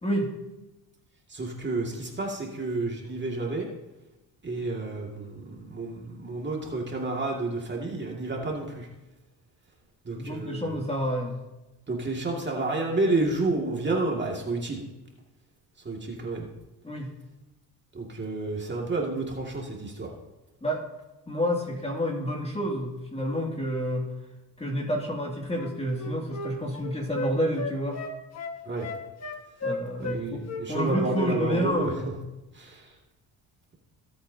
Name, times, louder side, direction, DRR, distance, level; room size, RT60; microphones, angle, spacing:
voice 1, 0.0-0.4 10.2-11.4 16.8-17.1 20.6-20.8 21.3-24.1 24.6-28.0 29.6-32.2, equal, 15° left, 0 dB, 2.3 m, -29 dB
voice 2, 1.3-3.7 4.4-8.9 10.1-10.7 11.9-14.8 15.9-16.5 17.9-20.1 28.7-28.9 30.0-31.9 32.6-32.7, right 2 dB, 30° right, -1 dB, 2.2 m, -30 dB
Wind instrument woodwind instrument, 25.5-30.2 30.5-31.5 31.8-32.0, left 2 dB, 40° left, 1.6 m, -35 dB
18.0 x 8.1 x 2.8 m, 1.0 s
cardioid pair, 95°, 39 cm